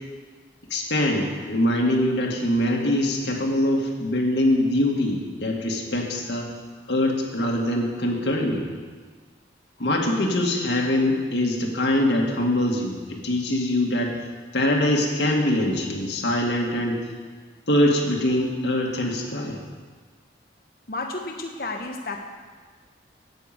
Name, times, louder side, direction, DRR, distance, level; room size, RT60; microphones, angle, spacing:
voice 1, 0.7-6.5 6.9-8.6 9.8-14.1 14.5-17.0 17.7-19.6, left 1 dB, 75° left, -1 dB, 1.9 m, -23 dB
voice 2, 20.9-22.2, left 2 dB, 55° left, 2 dB, 1.0 m, -31 dB
9.3 x 9.1 x 7.6 m, 1.5 s
head